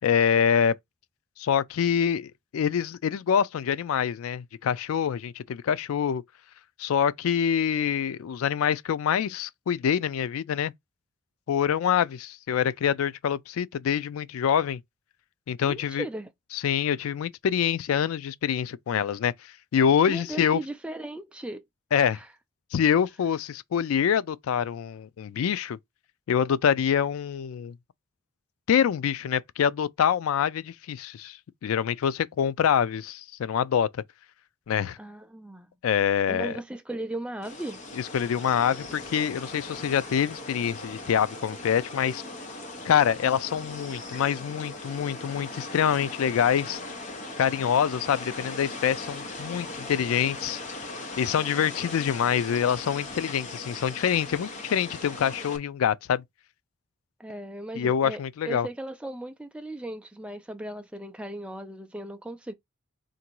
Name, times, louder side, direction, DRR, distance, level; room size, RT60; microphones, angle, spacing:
voice 1, 0.0-0.7 1.4-6.2 6.8-10.7 11.5-14.8 15.5-16.1 16.5-19.3 19.7-20.6 21.9-22.2 22.7-25.8 26.3-27.8 28.7-33.9 34.7-35.0 35.8-36.6 38.1-42.2 42.8-46.8 47.4-50.6 51.2-56.2 57.8-58.7, left 8 dB, 85° left, 0.3 m, -25 dB
voice 2, 15.6-16.3 20.1-21.6 22.1-22.3 35.0-35.7 36.3-37.8 57.2-58.2 58.5-62.5, right 1 dB, 5° right, 0.3 m, -37 dB
sound 1, 37.4-55.6, left 2 dB, 35° left, 0.8 m, -39 dB
3.8 x 2.6 x 4.4 m
head